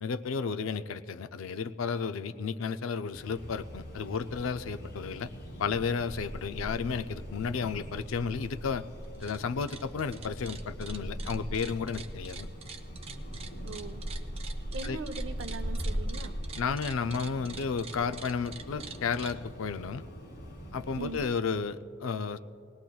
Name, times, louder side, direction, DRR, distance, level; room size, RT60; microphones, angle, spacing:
voice 1, 0.0-5.3 5.6-8.8 9.2-12.5 14.8-15.0 16.6-20.0 20.7-22.4, left 5 dB, 85° left, 11 dB, 0.4 m, -33 dB
sound 1, 3.1-21.3, equal, 50° left, 1.9 m, -40 dB
sound 2, 9.0-9.4 9.6-19.3, right 6 dB, 30° right, 0.5 m, -45 dB
voice 2, 13.6-14.0 14.7-16.3 21.0-21.2, right 3 dB, 75° right, 9 dB, 0.6 m, -40 dB
19.5 x 19.0 x 2.3 m, 2.6 s
head